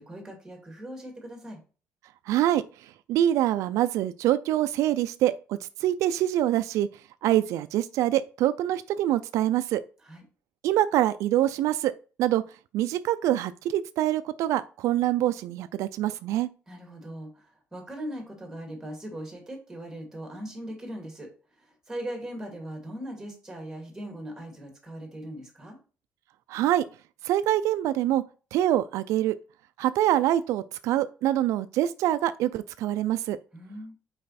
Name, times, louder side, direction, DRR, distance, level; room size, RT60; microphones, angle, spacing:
voice 1, 0.0-1.6 10.0-10.2 16.7-21.3 21.6-25.8 33.5-33.9, right 1 dB, 10° right, 2.4 m, -39 dB
voice 2, 2.3-6.9 7.2-9.8 10.6-11.9 12.2-12.4 12.7-16.5 26.5-26.8 27.2-28.2 28.5-29.4 29.8-33.4, right 13 dB, 85° right, 0.4 m, -25 dB
5.4 x 4.9 x 4.1 m
cardioid pair, 140°, 5 cm